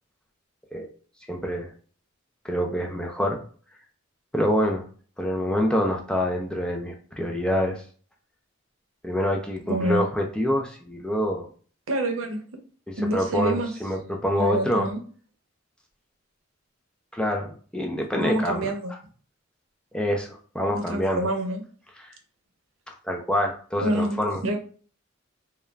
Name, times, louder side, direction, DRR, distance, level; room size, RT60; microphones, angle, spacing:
voice 1, 1.3-1.7 2.4-3.4 4.3-4.8 5.2-7.8 9.0-11.5 13.0-14.9 17.1-18.7 19.9-21.3 22.0-22.1 23.1-24.4, equal, 5° left, 1 dB, 0.3 m, -26 dB
voice 2, 9.7-10.0 11.9-12.4 13.0-13.7 14.4-15.0 18.1-18.9 20.7-21.6 23.8-24.6, right 1 dB, 90° right, 4 dB, 0.6 m, -27 dB
2.3 x 2.2 x 3.1 m, 0.42 s
head